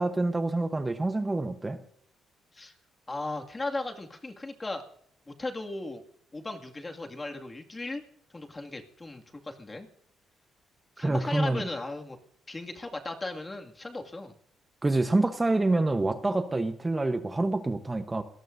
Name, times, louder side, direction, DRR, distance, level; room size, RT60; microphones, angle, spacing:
voice 1, 0.0-1.8 11.0-11.6 14.8-18.2, right 2 dB, 20° right, 8 dB, 1.0 m, -27 dB
voice 2, 3.1-4.8 5.3-6.0 6.3-8.0 8.3-9.9 11.0-12.2 12.5-14.3, left 2 dB, 25° left, 2 dB, 2.2 m, -36 dB
25.5 x 19.0 x 2.7 m, 0.67 s
cardioid pair, 90°, 0 cm